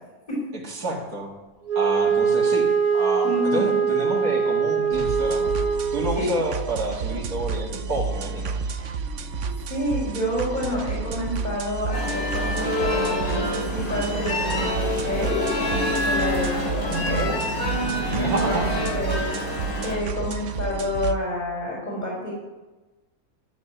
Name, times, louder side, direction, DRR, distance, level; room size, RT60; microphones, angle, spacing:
voice 1, 0.6-1.3 1.7-2.7 2.9-5.5 5.9-8.6 13.9-14.0 16.8-17.6 18.2-19.3, right 1 dB, 85° right, -3 dB, 2.5 m, -29 dB
Wind instrument woodwind instrument, 1.7-6.3, right 6 dB, 25° right, 1.3 m, -22 dB
voice 2, 3.2-3.8 6.1-6.3 9.2-9.3 9.7-17.3 18.1-18.6 18.9-19.3 19.8-22.3, left 1 dB, 30° left, -6 dB, 4.8 m, -29 dB
sound 1, 4.9-21.2, right 5 dB, 60° right, 1.1 m, -31 dB
sound 2, 11.9-20.0, left 1 dB, 75° left, 3.4 m, -27 dB
13.5 x 7.3 x 9.9 m, 1.2 s
omnidirectional pair, 1.6 m